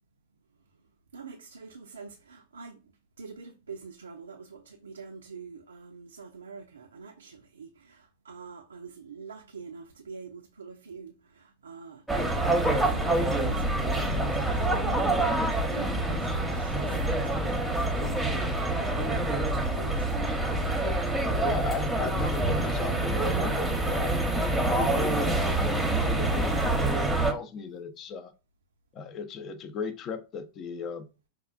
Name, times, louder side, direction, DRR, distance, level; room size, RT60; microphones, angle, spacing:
voice 1, 1.1-2.8 3.2-12.0 12.8-15.4 15.7-18.2 18.4-20.3 21.3-21.6, right 5 dB, 80° right, 0.4 m, -45 dB
sound 1, 12.1-27.3, right 2 dB, 5° right, 0.8 m, -26 dB
voice 2, 21.4-24.1 24.6-28.3 28.9-31.1, left 5 dB, 35° left, 0.5 m, -36 dB
5.5 x 2.4 x 2.4 m
figure-of-eight pair, 95°, 0 cm